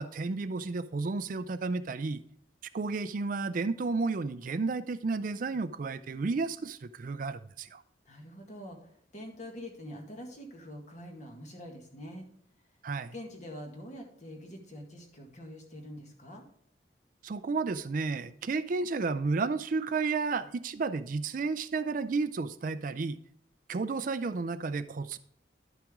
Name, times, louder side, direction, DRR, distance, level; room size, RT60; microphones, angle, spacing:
voice 1, 0.0-2.2 2.7-7.8 12.8-13.1 17.2-23.2 23.7-25.2, right 4 dB, 50° right, 0.4 m, -32 dB
voice 2, 8.1-12.3 13.1-16.4, equal, 40° left, 1.8 m, -45 dB
11.5 x 6.0 x 3.6 m
head